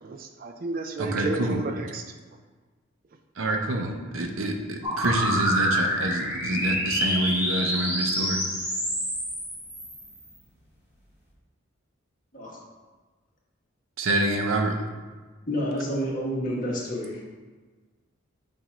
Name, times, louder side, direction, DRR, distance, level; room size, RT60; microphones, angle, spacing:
voice 1, 0.0-2.0, right 3 dB, 45° right, 6 dB, 0.3 m, -32 dB
voice 2, 1.0-1.6 3.4-8.4 14.0-14.8, right 1 dB, 85° right, 4 dB, 0.7 m, -27 dB
sound 1, 4.8-10.3, equal, 10° right, 1.2 m, -27 dB
voice 3, 15.5-17.2, equal, 40° left, -4 dB, 1.3 m, -29 dB
7.3 x 2.5 x 5.0 m, 1.4 s
head